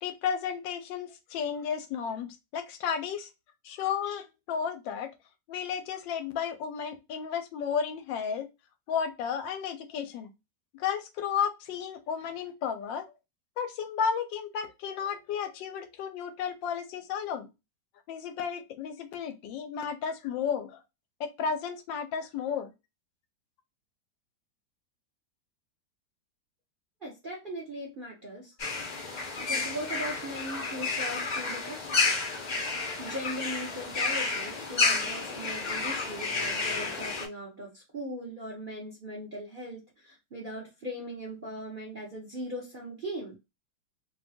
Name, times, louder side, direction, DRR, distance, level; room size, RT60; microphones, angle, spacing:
voice 1, 0.0-3.3 3.6-5.1 5.5-8.5 8.9-10.3 10.8-13.1 13.6-17.5 18.1-20.8 21.2-22.7, left 7 dB, 90° left, 1.3 m, -33 dB
voice 2, 27.0-28.5 29.4-32.2 33.0-43.4, equal, 50° right, 0.6 m, -39 dB
sound 1, 28.6-37.3, left 4 dB, 45° left, 0.5 m, -31 dB
3.1 x 2.2 x 2.5 m
omnidirectional pair, 2.0 m